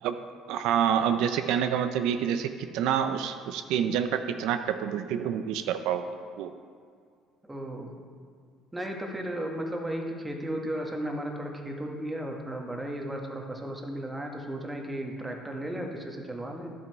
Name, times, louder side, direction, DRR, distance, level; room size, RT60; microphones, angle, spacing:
voice 1, 0.5-6.1 6.4-6.5, right 9 dB, 75° right, 8 dB, 0.4 m, -27 dB
voice 2, 7.4-8.1 8.7-16.7, right 1 dB, 10° right, 1 dB, 1.2 m, -35 dB
11.0 x 6.3 x 4.5 m, 2.1 s
cardioid pair, 125°, 0 cm